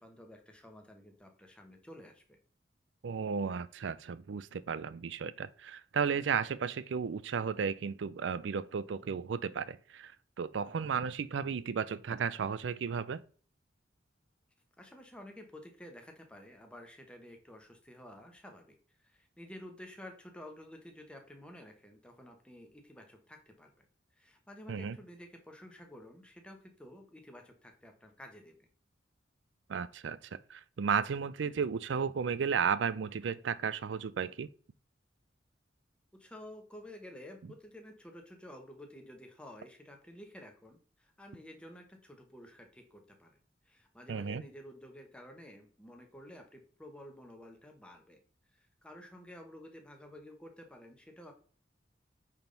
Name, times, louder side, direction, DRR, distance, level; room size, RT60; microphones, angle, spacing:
voice 1, 0.0-2.4 14.8-18.7 19.0-23.9 24.2-28.7 36.1-43.4 43.7-48.2 48.8-51.3, left 1 dB, 5° left, 1.1 m, -51 dB
voice 2, 3.0-10.1 10.4-13.2 24.7-25.0 29.7-34.5 44.1-44.4, right 6 dB, 80° right, 0.4 m, -34 dB
8.9 x 3.6 x 3.9 m
head